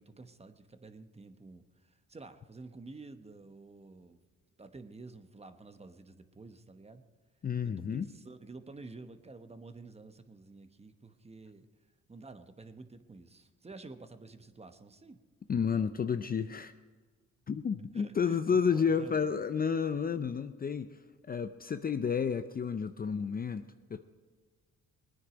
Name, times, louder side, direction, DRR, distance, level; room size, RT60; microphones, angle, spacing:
voice 1, 0.0-4.2 4.6-7.0 7.6-11.7 12.1-15.2 17.9-19.3, right 3 dB, 20° right, 8 dB, 1.0 m, -50 dB
voice 2, 7.4-8.1 15.5-16.7 17.5-21.0 21.3-24.0, left 6 dB, 30° left, 10 dB, 0.5 m, -31 dB
20.5 x 9.6 x 5.1 m, 1.5 s
cardioid pair, 90°, 30 cm